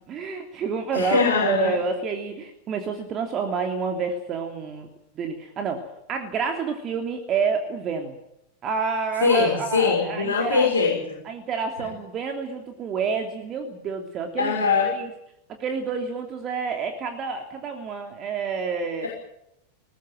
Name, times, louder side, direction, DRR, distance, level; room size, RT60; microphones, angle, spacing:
voice 1, 0.0-4.9 5.2-8.1 8.6-10.7 11.2-15.1 15.6-19.1, right 5 dB, 30° right, 4 dB, 3.0 m, -28 dB
voice 2, 0.9-1.7 9.2-11.2 14.4-14.9 19.0-19.1, left 5 dB, 70° left, -2 dB, 6.3 m, -22 dB
21.5 x 20.0 x 9.2 m, 0.82 s
figure-of-eight pair, 90°, 0 cm